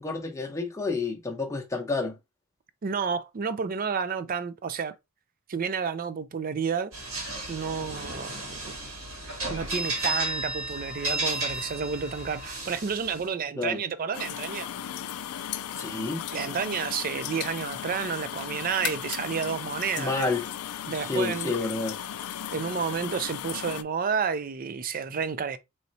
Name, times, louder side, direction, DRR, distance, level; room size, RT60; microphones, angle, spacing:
voice 1, 0.0-2.2 13.6-13.8 15.8-16.2 20.0-20.4 21.0-22.0, left 3 dB, 15° left, 0.8 m, -29 dB
voice 2, 2.8-4.9 5.5-6.9 7.5-8.3 8.6-8.8 9.5-14.7 16.3-20.3 20.9-21.5 22.5-25.6, right 6 dB, 40° right, 0.4 m, -30 dB
sound 1, 6.9-13.2, right 2 dB, 70° right, 1.9 m, -33 dB
sound 2, 14.1-23.8, left 10 dB, 85° left, 0.4 m, -36 dB
sound 3, 18.2-20.9, left 9 dB, 55° left, 0.8 m, -41 dB
4.1 x 3.2 x 2.7 m
head